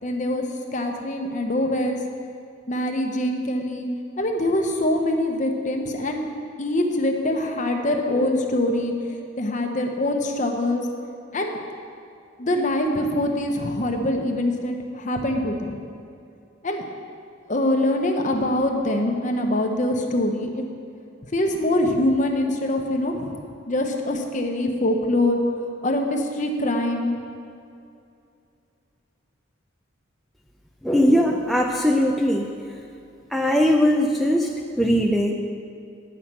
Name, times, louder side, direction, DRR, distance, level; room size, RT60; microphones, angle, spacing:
voice 1, 0.0-0.4 0.7-2.0 2.7-3.9 4.2-6.3 6.6-10.9 11.3-11.6 12.4-15.8 16.6-16.8 17.5-20.6 21.3-23.3 23.7-27.1, left 1 dB, 40° left, 3 dB, 0.9 m, -24 dB
voice 2, 30.8-32.5 33.3-35.3, equal, ahead, 0 dB, 0.4 m, -20 dB
9.6 x 5.7 x 7.4 m, 2.5 s
head